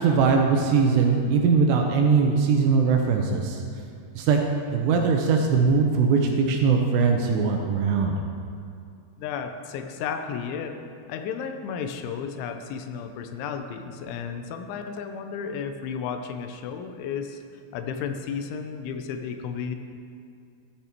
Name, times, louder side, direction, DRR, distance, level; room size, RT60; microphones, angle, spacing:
voice 1, 0.0-3.6 4.2-4.4 4.7-8.2, right 5 dB, 80° right, 2 dB, 2.6 m, -21 dB
voice 2, 9.2-10.8 11.1-17.4 17.7-19.8, left 6 dB, 85° left, 6 dB, 3.0 m, -33 dB
13.5 x 8.9 x 4.5 m, 2.4 s
omnidirectional pair, 5.4 m